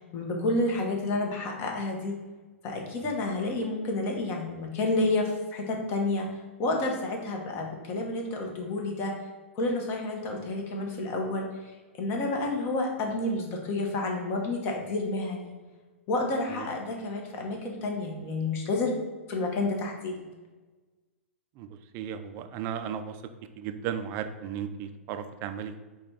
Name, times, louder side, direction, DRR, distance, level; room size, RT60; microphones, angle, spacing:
voice 1, 0.0-2.2 2.6-6.3 6.6-9.1 9.5-11.7 12.0-15.5 16.1-18.9 19.3-20.3, left 2 dB, 35° left, 1 dB, 1.0 m, -30 dB
voice 2, 21.9-23.2 23.6-25.8, right 8 dB, 35° right, 9 dB, 0.4 m, -35 dB
4.9 x 2.3 x 4.4 m, 1.3 s
figure-of-eight pair, 110°, 7 cm